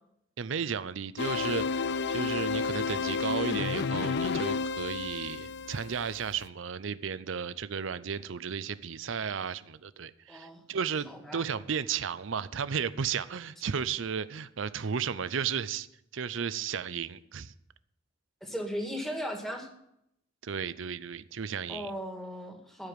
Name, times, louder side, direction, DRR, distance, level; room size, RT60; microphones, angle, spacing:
voice 1, 0.4-15.9 16.1-17.5 20.4-21.9, right 6 dB, 70° right, 0.6 m, -34 dB
sound 1, 1.2-6.4, left 4 dB, 60° left, 0.4 m, -31 dB
voice 2, 10.3-10.7 11.0-11.4 18.4-19.7 21.7-22.9, equal, ahead, 1.8 m, -37 dB
14.0 x 5.0 x 9.1 m
head